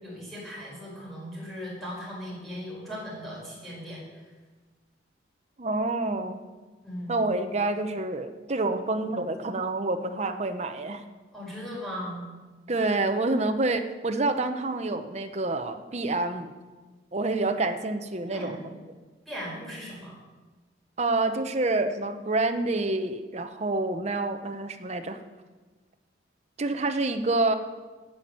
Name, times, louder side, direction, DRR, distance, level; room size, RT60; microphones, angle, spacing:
voice 1, 0.0-4.0 6.8-7.2 11.3-12.2 18.3-18.6 19.3-20.1, equal, ahead, -7 dB, 4.9 m, -38 dB
voice 2, 5.6-6.4 7.1-11.0 12.7-16.5 17.1-18.7 21.0-25.2 26.6-27.5, right 2 dB, 35° right, 7 dB, 0.8 m, -27 dB
9.6 x 8.7 x 7.6 m, 1.3 s
head